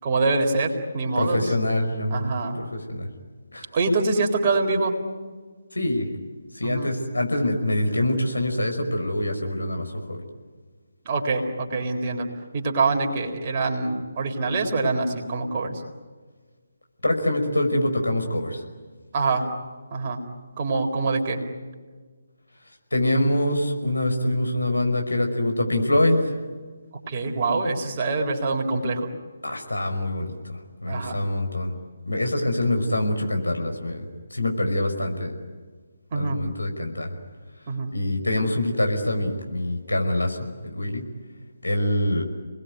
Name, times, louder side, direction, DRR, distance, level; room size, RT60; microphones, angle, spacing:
voice 1, 0.0-1.4 2.1-2.6 3.7-4.9 6.6-6.9 11.1-12.3 12.5-15.8 19.1-19.5 19.9-20.2 20.6-21.4 27.1-29.1 30.9-31.2 36.1-36.4 37.7-37.9, right 3 dB, 30° right, 1 dB, 4.1 m, -25 dB
voice 2, 1.2-2.3 2.6-3.1 3.5-3.6 5.7-6.1 6.5-10.2 17.0-18.6 22.9-26.2 29.4-31.7 32.1-35.3 36.1-37.1 37.9-41.0 41.6-42.2, left 1 dB, 75° left, 4 dB, 5.5 m, -25 dB
29.5 x 21.0 x 9.6 m, 1.4 s
figure-of-eight pair, 145°, 0 cm